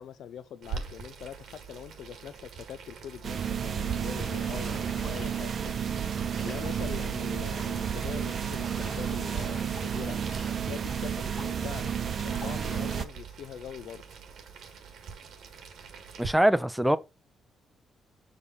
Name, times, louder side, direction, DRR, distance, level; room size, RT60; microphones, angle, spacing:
voice 1, 0.0-5.8 6.4-10.2 10.7-11.9 12.2-14.0 16.8-17.0, left 9 dB, 75° left, 0.5 m, -43 dB
Boiling, 0.6-16.3, right 6 dB, 75° right, 1.7 m, -45 dB
sound 1, 3.2-13.0, right 8 dB, 45° right, 0.5 m, -31 dB
sound 2, 4.2-13.0, left 5 dB, 60° left, 1.2 m, -49 dB
voice 2, 16.2-17.0, right 1 dB, 5° right, 0.5 m, -23 dB
7.0 x 5.0 x 4.0 m
cardioid pair, 130°, 0 cm